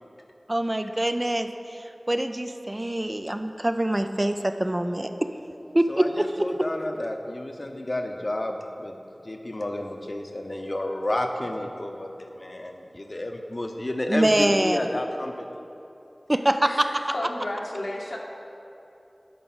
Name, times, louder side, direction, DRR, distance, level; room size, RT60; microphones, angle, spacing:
voice 1, 0.5-5.3 5.7-6.3 14.1-14.8 16.3-17.0, right 1 dB, 30° right, 7 dB, 0.4 m, -24 dB
voice 2, 5.9-9.0 9.2-15.5, left 1 dB, 50° left, 4 dB, 0.8 m, -31 dB
voice 3, 16.7-18.2, left 1 dB, 80° left, -1 dB, 1.1 m, -33 dB
9.3 x 5.2 x 6.2 m, 2.9 s
wide cardioid pair, 45°, 0 cm